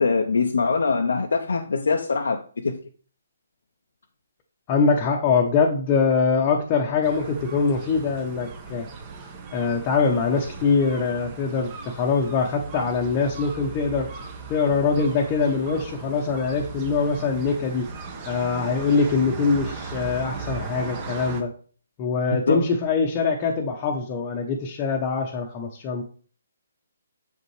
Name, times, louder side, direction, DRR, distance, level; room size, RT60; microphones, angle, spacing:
voice 1, 0.0-2.8 22.5-22.7, left 4 dB, 70° left, 0.6 m, -23 dB
voice 2, 4.7-8.9 9.5-14.1 14.5-17.9 18.3-21.5 22.0-26.0, left 5 dB, 25° left, 0.8 m, -23 dB
sound 1, 7.0-21.4, right 4 dB, 30° right, 1.1 m, -37 dB
6.8 x 5.2 x 3.2 m
figure-of-eight pair, 140°, 0 cm